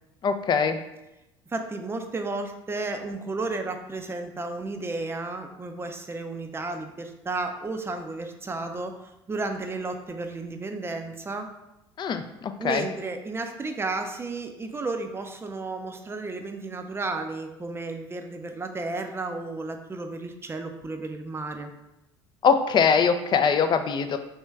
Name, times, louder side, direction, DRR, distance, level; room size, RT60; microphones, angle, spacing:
voice 1, 0.2-0.8 12.0-12.2 12.6-12.8 22.4-24.2, left 6 dB, 35° left, 8 dB, 0.4 m, -22 dB
voice 2, 1.5-8.9 9.3-11.5 12.6-21.7, right 3 dB, 20° right, 6 dB, 0.5 m, -33 dB
3.4 x 3.1 x 3.2 m, 0.93 s
hypercardioid pair, 70°, 13 cm